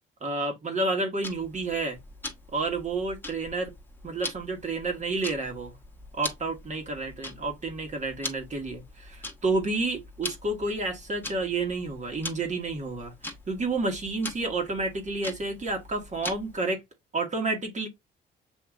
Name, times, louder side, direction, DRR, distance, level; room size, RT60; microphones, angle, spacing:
voice 1, 0.2-2.0 2.5-3.7 4.0-5.8 6.2-16.8 17.1-17.9, right 3 dB, 35° right, 1.4 m, -30 dB
Tick-tock, 1.2-16.7, left 2 dB, 10° left, 1.1 m, -42 dB
7.3 x 2.8 x 2.3 m
cardioid pair, 90°, 20 cm